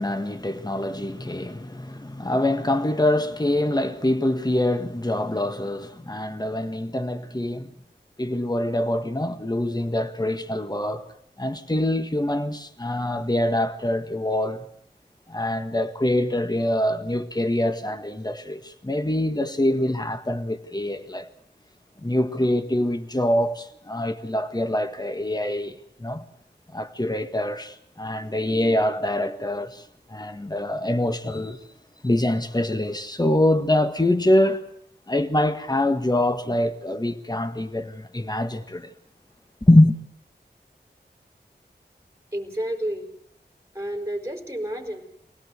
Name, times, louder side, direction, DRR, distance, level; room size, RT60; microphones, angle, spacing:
voice 1, 0.0-7.7 8.2-11.1 11.4-14.7 15.3-21.3 22.0-26.2 26.7-31.6 32.0-34.6 35.1-38.9 39.6-40.0, left 1 dB, 25° left, 1.7 m, -24 dB
voice 2, 42.3-43.1 43.7-45.0, right 1 dB, 15° right, 4.7 m, -30 dB
24.0 x 17.5 x 8.0 m
wide cardioid pair, 70°, 18 cm